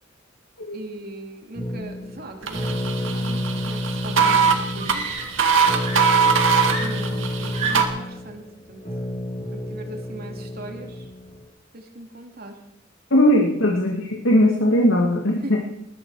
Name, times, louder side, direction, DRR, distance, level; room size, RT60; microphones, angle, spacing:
voice 1, 0.7-5.0 6.8-8.8 9.5-11.1 11.7-12.6 15.4-15.6, right 1 dB, 55° right, 3 dB, 2.6 m, -39 dB
sound 1, 1.5-11.4, left 1 dB, 35° left, 4.2 m, -30 dB
sound 2, 2.4-7.8, right 6 dB, 90° right, 2.0 m, -22 dB
Screaming, 4.8-5.5 5.8-8.1 9.1-9.4, right 4 dB, 40° right, 3.2 m, -32 dB
voice 2, 13.1-15.6, equal, 80° left, 0 dB, 2.3 m, -19 dB
21.0 x 12.5 x 4.9 m, 0.81 s
head